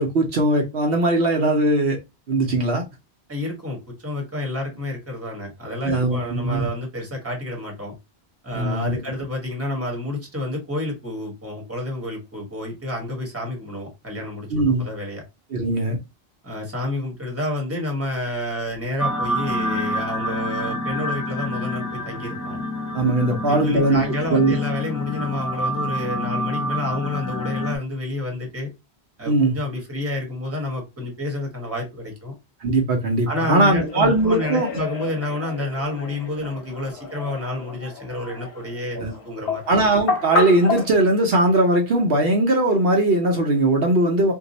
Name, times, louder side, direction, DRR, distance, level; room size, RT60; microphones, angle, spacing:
voice 1, 0.0-2.0 2.3-2.8 5.8-6.7 8.5-9.0 14.5-14.8 15.5-16.0 22.9-24.0 24.3-24.6 29.3-29.6 32.6-34.7 38.9-39.1 39.7-44.3, right 2 dB, 65° right, 0.9 m, -19 dB
voice 2, 3.3-7.9 8.4-15.2 16.4-22.6 23.4-28.7 29.2-32.3 33.3-39.6, left 1 dB, 15° right, 1.0 m, -29 dB
sound 1, 19.0-27.8, left 1 dB, 25° left, 0.4 m, -28 dB
sound 2, 33.3-40.9, left 3 dB, 90° left, 1.1 m, -31 dB
2.6 x 2.3 x 3.9 m
omnidirectional pair, 1.1 m